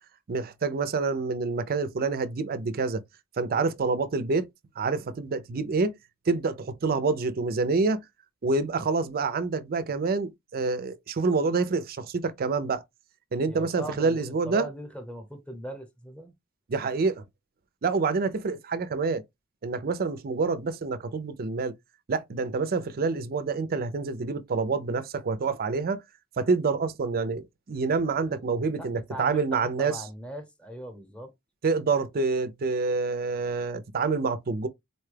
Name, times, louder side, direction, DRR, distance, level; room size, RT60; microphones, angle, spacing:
voice 1, 0.3-3.0 3.4-4.5 4.8-5.9 6.3-8.0 8.4-12.8 13.3-14.7 16.7-17.2 17.8-19.2 19.6-21.7 22.1-26.0 26.4-30.0 31.6-34.7, right 4 dB, 45° right, 0.5 m, -27 dB
voice 2, 13.5-16.3 28.3-28.4 28.8-31.3, right 1 dB, 5° left, 0.9 m, -40 dB
4.2 x 2.2 x 3.2 m
head